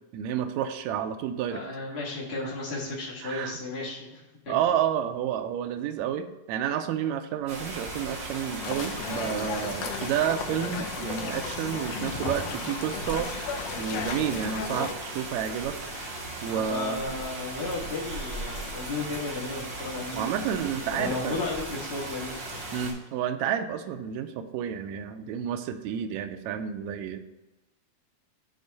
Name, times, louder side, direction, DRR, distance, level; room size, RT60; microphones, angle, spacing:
voice 1, 0.1-1.6 3.2-3.6 4.5-13.3 13.8-15.8 16.4-17.0 20.1-21.4 22.7-27.2, right 9 dB, 85° right, 7 dB, 1.6 m, -30 dB
voice 2, 1.5-4.5 16.5-20.3 20.9-22.3, left 3 dB, 60° left, -5 dB, 0.6 m, -34 dB
sound 1, 7.5-22.9, right 2 dB, 55° right, 3.2 m, -37 dB
sound 2, 8.6-14.9, left 7 dB, 80° left, 1.5 m, -35 dB
8.7 x 3.4 x 5.3 m, 1.1 s
omnidirectional pair, 3.7 m